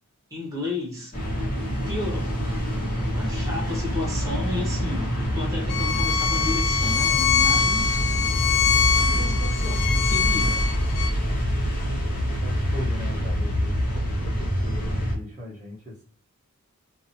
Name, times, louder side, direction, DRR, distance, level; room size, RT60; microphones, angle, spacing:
voice 1, 0.3-1.1 1.9-2.4 3.1-8.0 8.9-10.7, left 2 dB, 15° right, 1.1 m, -33 dB
sound 1, 1.1-15.1, equal, 40° left, 1.1 m, -26 dB
Bowed string instrument, 5.7-11.1, left 7 dB, 75° left, 0.3 m, -24 dB
voice 2, 12.4-16.0, left 1 dB, 35° right, 1.0 m, -39 dB
2.7 x 2.7 x 2.7 m
head